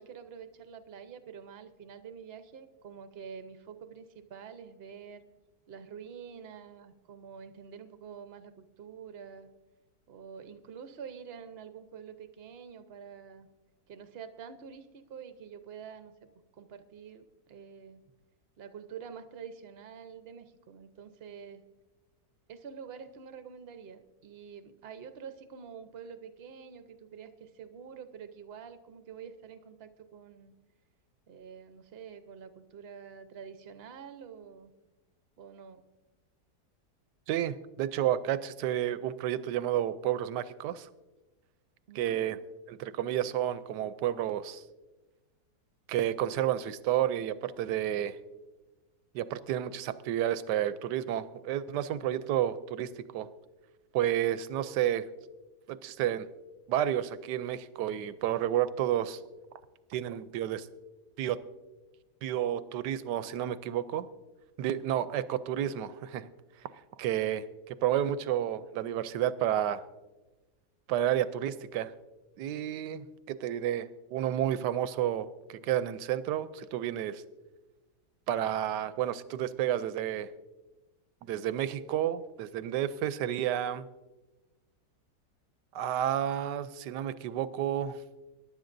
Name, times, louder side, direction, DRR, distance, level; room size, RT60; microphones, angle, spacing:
voice 1, 0.0-5.2 5.7-9.5 10.1-13.5 13.9-18.0 18.6-21.6 22.5-30.5 31.3-34.7 35.4-35.8 41.9-42.4, right 7 dB, 50° right, 10 dB, 0.8 m, -47 dB
voice 2, 37.3-40.9 42.0-42.4 42.7-44.6 45.9-48.2 49.1-53.3 53.9-55.1 55.7-56.3 56.7-59.2 59.9-60.7 61.2-61.4 62.2-64.1 64.6-66.3 67.0-69.8 70.9-71.9 72.4-77.2 78.3-80.3 81.2-83.8 85.7-88.0, right 11 dB, 85° right, 14 dB, 1.2 m, -31 dB
22.5 x 11.0 x 2.6 m, 1.1 s
omnidirectional pair, 1.8 m